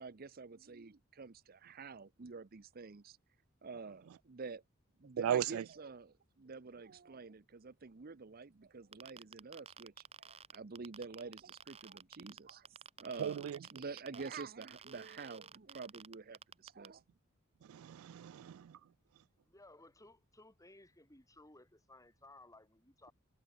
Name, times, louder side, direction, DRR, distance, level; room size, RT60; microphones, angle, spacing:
voice 1, 0.0-3.2 3.6-4.6 5.0-17.0, right 4 dB, 45° right, 0.7 m, -48 dB
voice 2, 5.2-5.6 13.2-13.6 17.7-18.8, right 9 dB, 85° right, 0.3 m, -36 dB
sound 1, 8.9-16.9, right 6 dB, 30° right, 3.7 m, -52 dB
voice 3, 19.5-23.1, left 2 dB, 15° left, 5.7 m, -59 dB
head